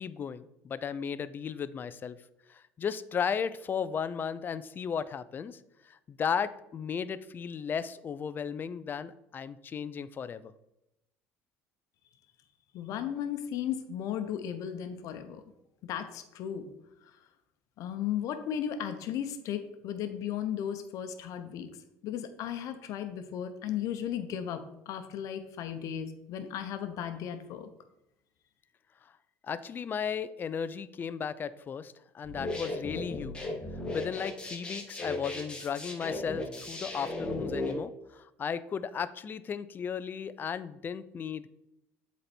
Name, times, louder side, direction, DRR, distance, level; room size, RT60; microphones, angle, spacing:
voice 1, 0.0-2.2 2.5-5.6 5.8-10.5 29.4-33.4 33.9-41.5, left 7 dB, 30° left, 14 dB, 0.4 m, -35 dB
voice 2, 12.7-15.4 15.9-16.7 17.8-21.7 22.0-27.7, left 9 dB, 60° left, 9 dB, 0.8 m, -35 dB
sound 1, 32.2-37.7, left 2 dB, 15° left, 1.6 m, -36 dB
7.7 x 4.2 x 4.3 m, 0.87 s
supercardioid pair, 100°, 6 cm